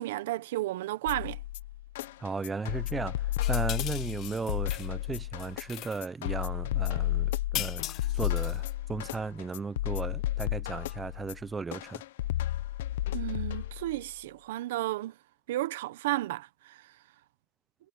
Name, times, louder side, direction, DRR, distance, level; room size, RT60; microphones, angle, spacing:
voice 1, 0.0-1.4 13.1-15.1 15.5-16.5, right 16 dB, 80° right, 1.0 m, -32 dB
sound 1, 1.1-14.0, left 14 dB, 85° left, 0.6 m, -32 dB
voice 2, 2.2-7.8 8.1-12.0, right 4 dB, 15° right, 0.7 m, -36 dB
sound 2, 3.4-4.9 5.2-6.0 7.5-8.7, left 14 dB, 45° left, 1.2 m, -38 dB
supercardioid pair, 135°, 0 cm